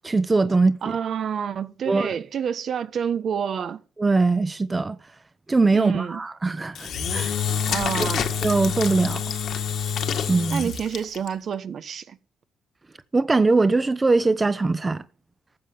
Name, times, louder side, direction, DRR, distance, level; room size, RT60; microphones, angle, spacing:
voice 1, 0.0-0.9 1.9-2.1 4.0-5.0 5.5-7.3 8.0-8.1 8.4-9.2 10.3-10.7 13.1-15.0, right 3 dB, 25° right, 1.0 m, -21 dB
voice 2, 0.8-3.8 5.7-6.2 7.7-8.3 10.5-12.2, right 8 dB, 60° right, 1.1 m, -28 dB
Engine / Drill, 6.7-11.3, left 7 dB, 70° left, 1.9 m, -27 dB
14.0 x 7.6 x 8.8 m
cardioid pair, 90°, 0 cm